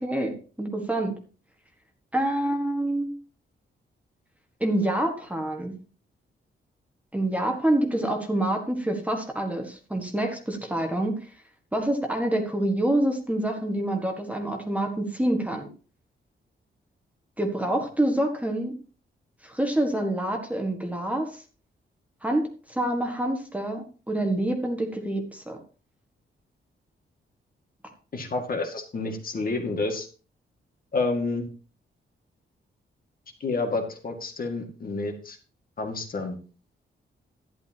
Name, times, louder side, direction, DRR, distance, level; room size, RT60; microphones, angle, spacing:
voice 1, 0.0-1.1 2.1-3.1 4.6-5.8 7.1-11.1 11.7-15.7 17.4-18.7 19.4-21.4 22.2-22.4 22.7-25.6, right 1 dB, 5° right, 2 dB, 1.6 m, -27 dB
voice 2, 28.1-30.1 30.9-31.5 33.4-35.4 35.8-36.4, left 3 dB, 45° left, 3 dB, 2.0 m, -29 dB
12.0 x 10.5 x 2.9 m, 0.36 s
wide cardioid pair, 140°, 21 cm